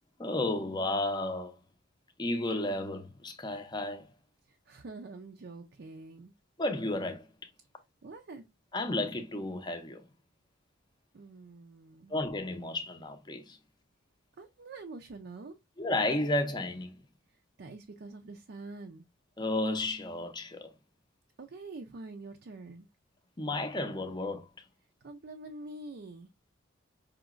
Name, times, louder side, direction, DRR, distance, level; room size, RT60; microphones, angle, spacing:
voice 1, 0.2-1.6 2.2-4.1 6.6-7.5 8.7-10.1 12.1-13.6 15.8-17.0 19.4-20.7 23.4-24.5, left 2 dB, 20° left, 0.6 m, -32 dB
voice 2, 4.4-6.3 8.0-8.4 11.1-12.2 14.4-15.6 17.3-19.0 21.4-22.9 25.0-26.3, right 3 dB, 55° right, 0.4 m, -46 dB
4.9 x 2.9 x 2.4 m
head